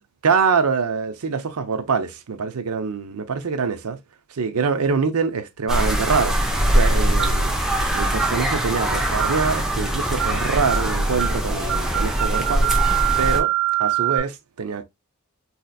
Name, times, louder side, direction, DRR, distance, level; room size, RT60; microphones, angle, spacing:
voice 1, 0.2-4.0 4.3-6.4 6.7-7.5 7.9-12.7 13.2-13.5 13.8-14.8, right 5 dB, 85° right, 0.6 m, -24 dB
sound 1, 5.7-13.4, equal, ahead, 0.7 m, -22 dB
sound 2, 7.2-7.5 8.2-8.4 9.2-9.5 10.2-10.4 10.7-10.9 11.2-11.4 11.7-14.2, right 14 dB, 60° right, 1.4 m, -24 dB
4.1 x 2.8 x 2.3 m
head